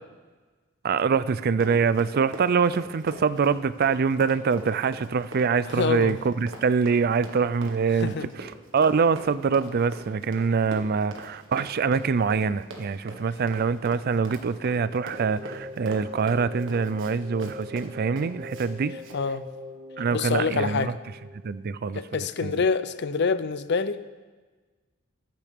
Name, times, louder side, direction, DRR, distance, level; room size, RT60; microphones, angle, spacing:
voice 1, 0.8-18.9 20.0-20.9 21.4-22.6, right 5 dB, 50° right, 16 dB, 0.4 m, -24 dB
Run, 1.3-18.7 19.0-19.2, right 2 dB, 70° right, 1.7 m, -42 dB
voice 2, 5.7-6.2 8.0-8.3 19.1-19.4 20.1-21.0 22.0-24.1, left 5 dB, 60° left, 13 dB, 0.5 m, -26 dB
sound 1, 14.6-21.8, left 2 dB, 25° right, 1.5 m, -42 dB
22.0 x 10.5 x 3.6 m, 1.4 s
head